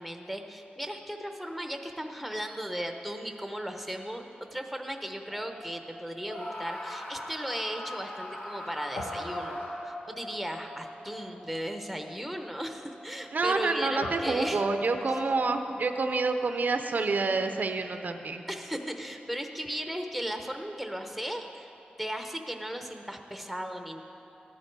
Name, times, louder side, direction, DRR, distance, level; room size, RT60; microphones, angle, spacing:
voice 1, 0.0-14.7 18.5-21.7 22.0-24.0, equal, ahead, 5 dB, 0.9 m, -36 dB
Guitar, 5.3-7.7 8.0-8.1 9.0-16.8, left 1 dB, 85° left, 1.3 m, -42 dB
Screaming, 6.2-10.0, left 1 dB, 65° left, 2.0 m, -40 dB
voice 2, 13.3-18.4, right 3 dB, 60° right, 7 dB, 0.6 m, -28 dB
14.5 x 11.0 x 4.7 m, 2.9 s
wide cardioid pair, 95°, 3 cm